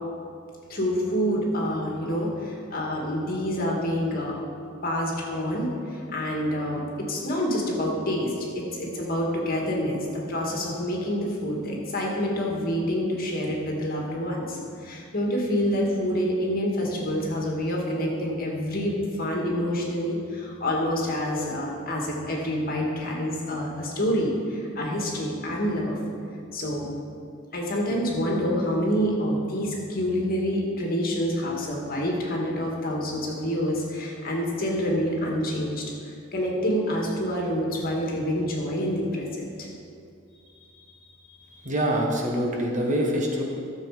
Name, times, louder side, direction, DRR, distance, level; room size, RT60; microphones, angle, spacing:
voice 1, 0.7-4.4 4.8-6.8 7.1-26.0 26.5-26.9 27.5-39.7, equal, 45° left, -2 dB, 2.1 m, -27 dB
voice 2, 41.6-43.4, equal, 40° right, -1 dB, 1.5 m, -25 dB
13.0 x 7.1 x 5.0 m, 2.4 s
head